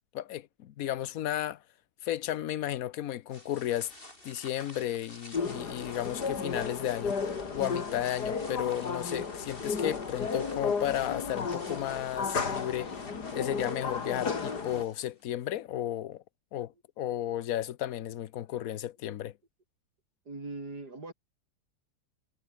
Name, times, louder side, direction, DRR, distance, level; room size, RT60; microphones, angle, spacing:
voice 1, 0.1-1.6 2.0-3.9 4.2-13.0 13.3-16.2 16.5-19.3, left 12 dB, 65° left, 1.2 m, -34 dB
sound 1, 3.3-15.2, left 1 dB, 35° left, 6.5 m, -50 dB
sound 2, 5.3-14.8, left 5 dB, 85° left, 3.0 m, -34 dB
voice 2, 20.3-21.1, right 3 dB, 80° right, 5.5 m, -40 dB
omnidirectional pair, 1.7 m